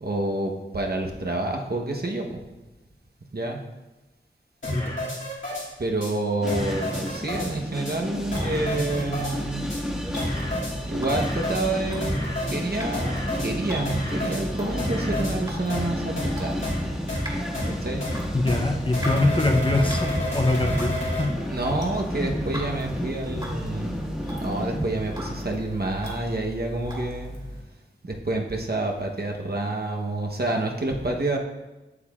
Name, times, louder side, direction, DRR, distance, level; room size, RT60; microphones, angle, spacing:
voice 1, 0.0-2.4 3.3-3.6 5.8-9.8 10.8-12.1 12.5-13.1 13.4-16.8 17.6-18.0 21.5-24.0 24.4-27.4 28.0-31.4, right 2 dB, 55° right, 1 dB, 1.0 m, -28 dB
sound 1, 4.6-5.6 6.0-6.1 6.5-7.5 7.9-8.0 8.3-9.3 9.7-9.8 10.2-10.7 11.1-11.6 12.0-12.6 12.9-13.5 13.9-14.4 14.8-15.3 15.7-15.8 16.2-16.3 16.6-16.8 17.1-17.2 17.5-17.7 18.0-18.1 18.5-18.6 18.9-21.2, left 1 dB, 75° left, 2.4 m, -29 dB
sound 2, 6.4-25.5, equal, 5° right, 1.6 m, -32 dB
sound 3, 8.2-27.6, equal, 25° right, 2.1 m, -38 dB
voice 2, 18.3-21.4, left 2 dB, 25° left, 3 dB, 0.7 m, -23 dB
8.3 x 7.2 x 2.4 m, 1.1 s
wide cardioid pair, 45°, 20 cm